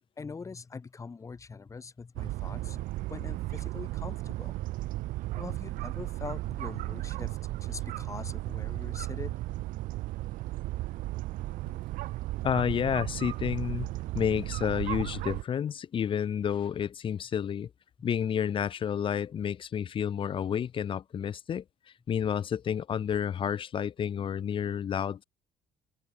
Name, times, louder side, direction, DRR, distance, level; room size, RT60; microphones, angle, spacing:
voice 1, 0.2-4.6 5.4-9.6, left 4 dB, 20° left, 3.8 m, -43 dB
sound 1, 2.2-15.4, right 17 dB, 75° right, 0.8 m, -35 dB
voice 2, 12.4-13.9 14.1-17.7 18.0-21.6 22.1-25.2, left 8 dB, 40° left, 1.4 m, -30 dB
open air
cardioid pair, 140°, 14 cm